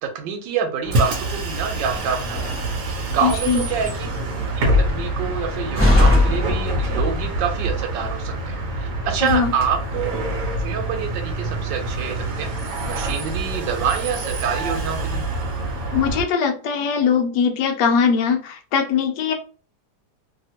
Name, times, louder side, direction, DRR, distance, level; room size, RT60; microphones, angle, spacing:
voice 1, 0.0-4.1 4.6-10.1 10.6-12.5 12.8-15.2, right 7 dB, 85° right, 6 dB, 1.4 m, -27 dB
Bus, 0.8-16.3, right 1 dB, 60° right, 0.9 m, -26 dB
Slam, 1.8-7.4, left 1 dB, 10° right, 1.0 m, -24 dB
voice 2, 3.2-3.6 9.2-9.5 15.9-19.3, left 6 dB, 75° left, 4 dB, 1.2 m, -20 dB
2.8 x 2.7 x 2.8 m, 0.38 s
omnidirectional pair, 1.9 m